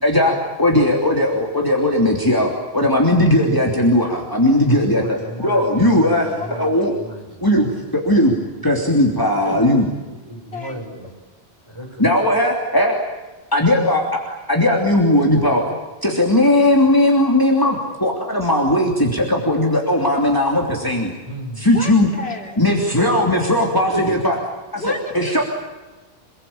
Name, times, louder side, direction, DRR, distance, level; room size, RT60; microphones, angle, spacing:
voice 1, 0.0-5.2 5.4-6.3 6.6-6.9 7.4-8.3 8.6-9.9 12.0-13.0 13.5-15.6 16.0-21.1 21.6-22.1 22.6-24.4 24.7-25.4, left 1 dB, 20° left, -1 dB, 3.1 m, -17 dB
voice 2, 4.7-7.4 9.4-11.1 11.7-12.1 21.3-21.6 23.9-24.1, equal, 25° right, 1 dB, 6.6 m, -33 dB
voice 3, 5.8-7.1 10.5-10.9 21.7-22.6 24.8-25.4, left 2 dB, 70° left, 1 dB, 4.1 m, -33 dB
28.5 x 20.5 x 8.8 m, 1.2 s
omnidirectional pair, 1.1 m